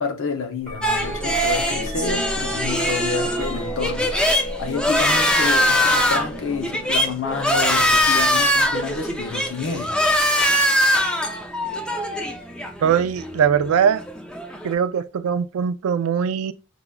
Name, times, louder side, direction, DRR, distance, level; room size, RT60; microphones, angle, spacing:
voice 1, 0.0-4.3 4.6-10.0, left 4 dB, 65° left, 0.6 m, -29 dB
sound 1, 0.6-10.7 11.6-12.1 12.8-13.8 15.6-15.7, equal, 35° left, 1.9 m, -35 dB
sound 2, 0.8-14.7, equal, 5° left, 0.4 m, -22 dB
voice 2, 12.8-14.0 14.6-16.5, right 7 dB, 80° right, 0.3 m, -21 dB
4.8 x 2.2 x 2.2 m
head